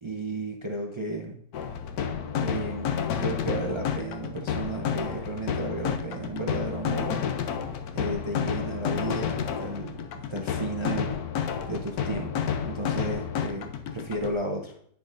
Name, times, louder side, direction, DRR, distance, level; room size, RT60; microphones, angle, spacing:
voice 1, 0.0-1.4 2.3-7.2 7.9-11.2 11.7-14.7, right 2 dB, 45° right, 1 dB, 0.3 m, -33 dB
sound 1, 1.5-14.3, left 7 dB, 70° left, 1.1 m, -30 dB
10.5 x 5.8 x 2.6 m, 0.64 s
omnidirectional pair, 1.8 m